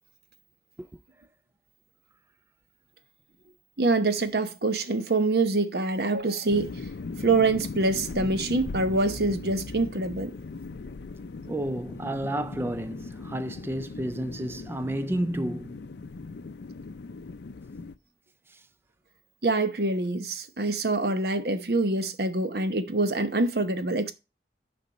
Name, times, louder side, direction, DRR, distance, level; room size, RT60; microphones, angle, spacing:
voice 1, 3.8-6.7 7.2-10.3 19.4-24.1, right 3 dB, 60° right, 0.9 m, -25 dB
sound 1, 6.5-17.9, left 3 dB, 75° left, 0.5 m, -39 dB
sound 2, 9.0-11.6, left 1 dB, 90° right, 4.0 m, -48 dB
voice 2, 11.5-15.8, right 1 dB, 15° right, 0.3 m, -31 dB
6.9 x 5.2 x 5.1 m
head